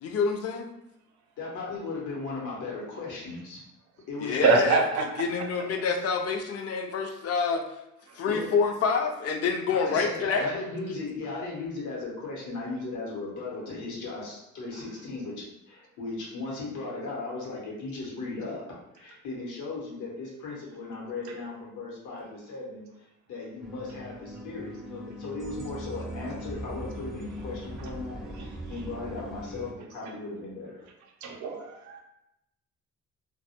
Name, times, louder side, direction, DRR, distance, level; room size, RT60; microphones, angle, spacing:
voice 1, 0.0-0.7 4.2-4.8 5.2-7.7 8.2-10.5, left 5 dB, 55° left, 5 dB, 0.4 m, -27 dB
voice 2, 1.4-3.6 4.1-4.8 8.3-8.6 9.7-18.6 18.9-22.9 23.3-30.8, left 3 dB, 80° left, -3 dB, 0.9 m, -37 dB
voice 3, 4.4-5.2 28.3-28.5 31.2-32.0, right 5 dB, 70° right, 3 dB, 0.5 m, -25 dB
sound 1, 23.6-29.7, equal, ahead, 0.4 m, -40 dB
2.2 x 2.1 x 2.8 m, 0.86 s
cardioid pair, 90°, 30 cm